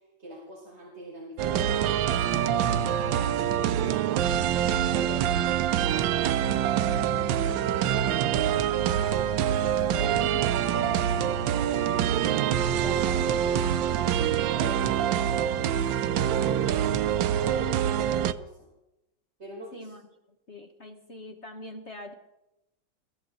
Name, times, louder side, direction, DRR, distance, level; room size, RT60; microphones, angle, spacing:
voice 1, 0.0-2.0 2.4-5.6 5.9-8.0 8.3-10.2 10.6-13.2 13.8-15.8 17.3-18.7 19.4-20.0, right 1 dB, 35° right, -5 dB, 5.2 m, -42 dB
sound 1, 1.4-18.3, right 10 dB, 80° right, 1.4 m, -25 dB
voice 2, 10.1-10.8 17.0-17.2 19.7-20.0 20.5-22.1, left 1 dB, 40° left, 4 dB, 1.4 m, -42 dB
23.0 x 14.5 x 4.0 m, 0.90 s
omnidirectional pair, 2.0 m